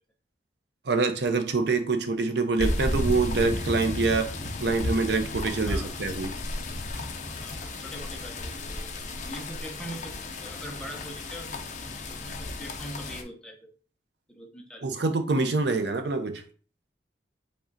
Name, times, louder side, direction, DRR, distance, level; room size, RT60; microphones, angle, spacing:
voice 1, 0.9-6.3 14.8-16.4, right 3 dB, 70° right, 8 dB, 0.6 m, -26 dB
sound 1, 2.6-13.2, left 1 dB, 40° left, 0.5 m, -33 dB
voice 2, 7.4-8.9 9.2-13.7 14.3-14.9, equal, 5° left, 1 dB, 0.6 m, -42 dB
4.9 x 2.3 x 3.9 m, 0.40 s
head